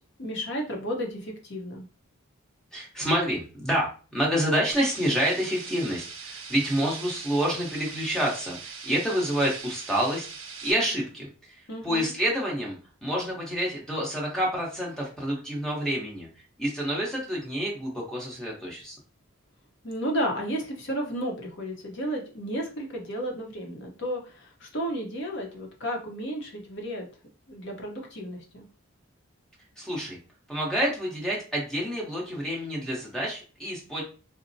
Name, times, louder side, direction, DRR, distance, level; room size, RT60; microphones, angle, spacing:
voice 1, 0.2-1.9 11.7-12.1 19.8-27.1 27.5-28.7, equal, 55° left, 1 dB, 0.9 m, -33 dB
voice 2, 2.7-10.3 10.6-16.3 16.6-19.0 29.8-30.2 30.5-34.0, equal, 5° left, -3 dB, 1.0 m, -28 dB
sound 1, 4.7-10.7, right 5 dB, 65° right, 0.8 m, -41 dB
4.1 x 2.1 x 2.6 m, 0.36 s
head